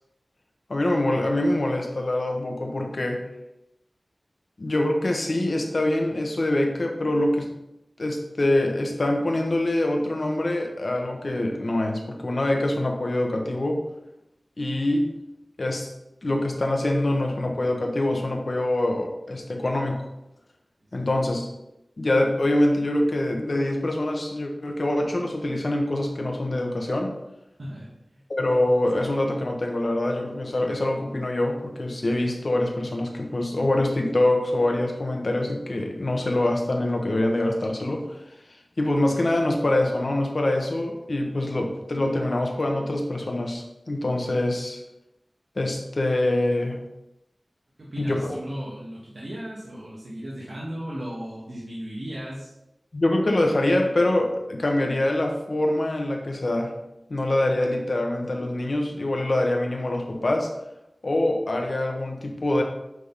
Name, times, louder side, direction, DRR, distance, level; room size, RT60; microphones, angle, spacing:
voice 1, 0.7-3.2 4.6-7.5 8.0-13.8 14.6-15.1 15.6-15.9 16.2-20.1 20.9-21.5 22.0-27.1 28.3-38.0 38.8-44.8 45.6-46.8 48.0-48.2 52.9-56.7 57.1-60.5 61.0-62.6, left 1 dB, 60° left, 2 dB, 1.2 m, -24 dB
voice 2, 27.6-28.2 47.8-52.5, equal, 65° right, -7 dB, 1.7 m, -36 dB
9.2 x 3.8 x 4.1 m, 0.89 s
wide cardioid pair, 65°, 0 cm